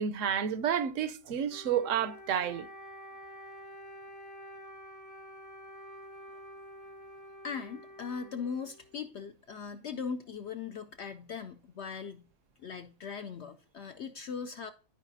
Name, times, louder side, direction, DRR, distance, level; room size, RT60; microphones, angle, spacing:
voice 1, 0.0-2.7, right 8 dB, 70° right, 0.9 m, -30 dB
Wind instrument woodwind instrument, 1.5-9.0, equal, 25° left, 0.4 m, -49 dB
voice 2, 7.4-12.3 12.6-14.7, left 6 dB, 70° left, 0.6 m, -39 dB
13.0 x 4.7 x 2.6 m
omnidirectional pair, 1.6 m